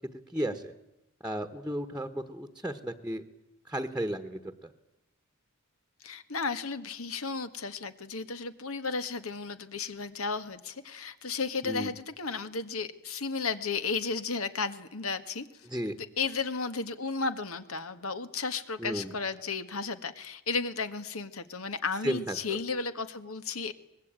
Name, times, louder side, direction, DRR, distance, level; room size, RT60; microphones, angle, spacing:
voice 1, 0.3-0.7 1.2-3.2 3.7-4.5 11.6-11.9 15.7-16.0 18.8-19.1 22.0-22.3, equal, 5° right, 8 dB, 1.2 m, -33 dB
voice 2, 6.0-15.5 16.0-23.7, left 4 dB, 80° left, 11 dB, 1.8 m, -34 dB
24.5 x 20.5 x 9.1 m, 0.89 s
head